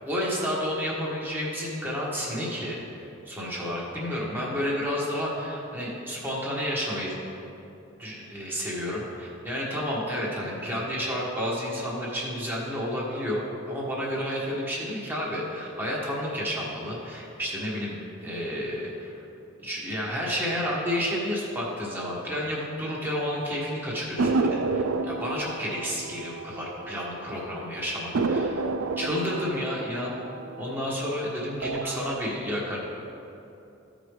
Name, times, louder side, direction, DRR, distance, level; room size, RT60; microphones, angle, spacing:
voice 1, 0.0-7.1 8.0-19.2 19.6-28.7 29.0-30.1 30.6-32.8, equal, 10° right, -5 dB, 1.4 m, -31 dB
sound 1, 24.2-27.2 27.5-27.6 28.1-31.1 31.5-32.1, right 3 dB, 85° right, 0.4 m, -29 dB
14.5 x 5.0 x 3.2 m, 2.8 s
head